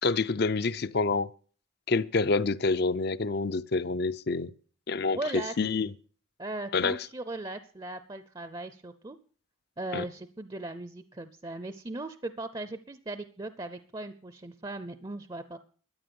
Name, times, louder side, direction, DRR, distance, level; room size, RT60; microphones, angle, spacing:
voice 1, 0.0-1.3 1.9-4.5 4.9-5.9 6.7-7.0 9.9-10.0, left 3 dB, 55° left, 0.6 m, -27 dB
voice 2, 5.1-5.5 6.4-9.2 9.8-15.6, right 2 dB, 20° right, 0.6 m, -38 dB
13.0 x 9.8 x 7.0 m
head